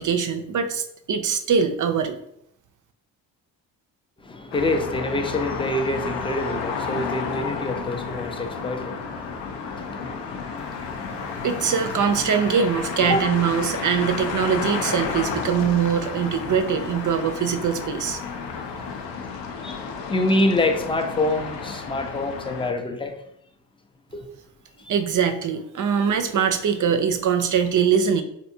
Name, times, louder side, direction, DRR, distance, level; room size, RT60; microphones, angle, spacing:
voice 1, 0.0-2.2 11.4-18.2 24.9-28.2, right 7 dB, 45° right, 0.5 m, -22 dB
voice 2, 4.2-11.5 13.0-13.3 19.6-19.8 20.1-23.2 24.1-24.3 24.8-24.9, left 1 dB, 10° left, 0.4 m, -26 dB
sound 1, 4.5-22.7, left 5 dB, 70° left, 0.6 m, -31 dB
3.3 x 2.7 x 2.7 m
supercardioid pair, 50°, 44 cm